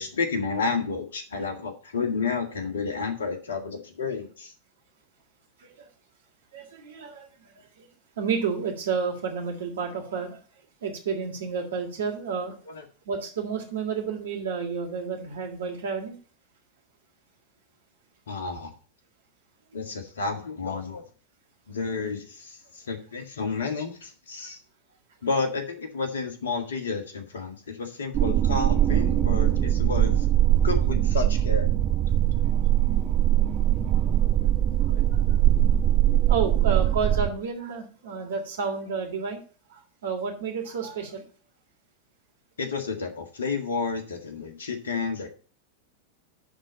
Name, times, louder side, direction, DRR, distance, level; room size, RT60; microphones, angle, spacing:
voice 1, 0.0-4.5 12.7-12.8 18.3-18.7 19.7-21.0 21.7-24.6 25.2-30.3 30.6-31.7 42.6-45.3, left 4 dB, 65° left, 6 dB, 1.9 m, -31 dB
voice 2, 6.5-7.9 8.2-10.4 10.8-12.6 13.1-16.2 34.8-35.4 36.3-39.4 39.7-41.2, right 5 dB, 65° right, 2 dB, 2.9 m, -31 dB
sound 1, 28.1-37.3, right 12 dB, 35° right, 1.5 m, -21 dB
11.0 x 4.1 x 7.6 m, 0.39 s
figure-of-eight pair, 90°, 0 cm